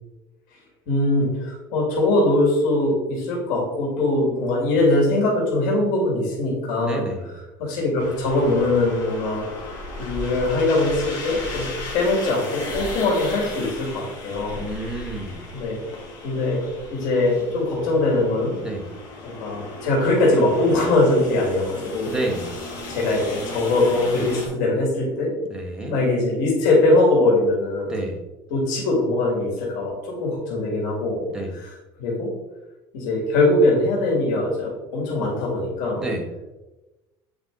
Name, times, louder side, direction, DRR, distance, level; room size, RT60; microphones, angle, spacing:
voice 1, 0.9-7.1 7.6-9.5 10.0-11.7 11.9-14.6 15.5-15.8 16.2-16.6 16.9-18.6 19.2-22.1 22.9-25.3 25.9-28.0 28.5-31.2 31.5-31.7 32.0-32.3 32.9-36.0, left 2 dB, 75° left, -2 dB, 2.5 m, -21 dB
voice 2, 6.8-7.3 14.6-15.4 18.6-18.9 22.1-22.5 25.5-26.0 27.8-28.2 31.3-31.5 36.0-36.3, right 1 dB, 5° right, 1 dB, 0.9 m, -29 dB
sound 1, 8.0-24.5, left 2 dB, 40° left, 2.3 m, -35 dB
7.8 x 5.1 x 3.7 m, 1.1 s
cardioid pair, 180°, 10 cm